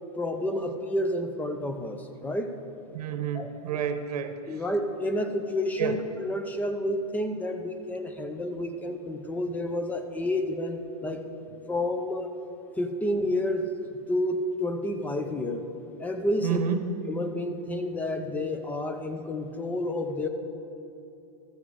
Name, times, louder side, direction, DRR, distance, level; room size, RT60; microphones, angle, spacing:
voice 1, 0.2-2.5 3.3-3.8 4.5-11.2 11.7-12.3 12.8-13.7 14.1-15.6 16.0-16.6 17.1-20.3, left 1 dB, 10° left, 7 dB, 0.5 m, -30 dB
voice 2, 2.9-4.4 5.8-6.0 16.4-16.9, right 7 dB, 85° right, 9 dB, 0.9 m, -29 dB
13.5 x 7.1 x 4.9 m, 2.7 s
supercardioid pair, 155°, 19 cm